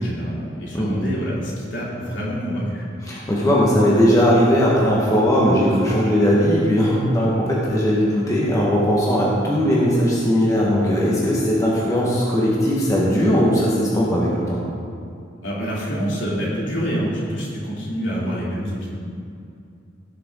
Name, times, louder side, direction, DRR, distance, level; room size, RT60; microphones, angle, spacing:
voice 1, 0.0-2.8 15.4-18.9, equal, 65° left, -6 dB, 3.1 m, -26 dB
voice 2, 3.1-14.6, equal, 15° left, -6 dB, 1.5 m, -18 dB
17.5 x 6.8 x 3.9 m, 2.5 s
head